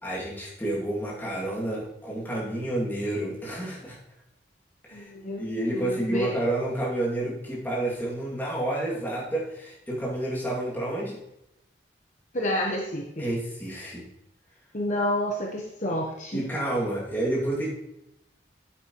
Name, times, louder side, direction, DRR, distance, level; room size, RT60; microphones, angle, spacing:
voice 1, 0.0-4.0 4.8-5.1 5.4-11.2 13.2-14.0 16.3-17.7, right 1 dB, 10° left, -5 dB, 2.5 m, -29 dB
voice 2, 4.9-5.4 5.7-6.4 12.3-13.2 14.7-16.4, left 1 dB, 40° left, -1 dB, 1.0 m, -29 dB
9.4 x 8.7 x 3.1 m, 0.84 s
head